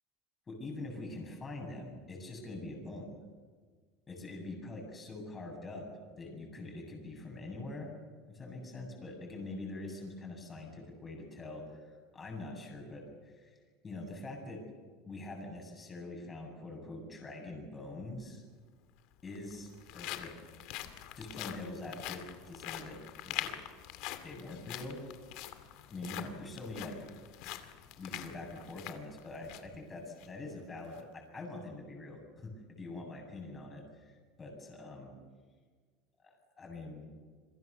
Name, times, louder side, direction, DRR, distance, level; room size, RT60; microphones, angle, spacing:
voice 1, 0.5-3.2 4.1-5.9 6.2-7.9 8.2-13.6 13.8-14.6 15.0-18.4 19.2-20.3 21.1-23.5 24.2-25.0 25.9-27.0 27.9-35.1 36.2-37.0, left 2 dB, 20° left, 1 dB, 7.7 m, -44 dB
sound 1, 18.2-18.3 19.2-29.8 30.1-30.3 30.8-31.0, left 13 dB, 60° left, 2.4 m, -44 dB
27.5 x 23.0 x 7.0 m, 1.5 s
supercardioid pair, 145°, 0 cm